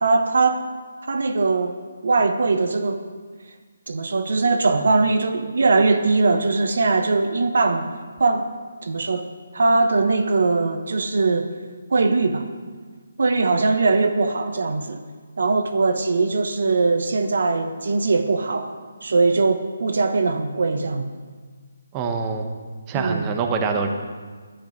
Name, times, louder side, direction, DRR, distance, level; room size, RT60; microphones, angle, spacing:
voice 1, 0.0-0.6 1.1-1.7 2.0-3.0 3.9-7.9 8.2-8.5 8.8-9.3 9.5-11.5 11.9-12.5 13.2-15.0 15.4-18.7 19.0-21.1 22.9-23.3, right 3 dB, 70° right, 7 dB, 1.0 m, -20 dB
voice 2, 21.9-22.5 22.9-23.9, right 5 dB, 20° right, 4 dB, 1.0 m, -24 dB
11.0 x 10.5 x 5.2 m, 1.5 s
figure-of-eight pair, 155°, 0 cm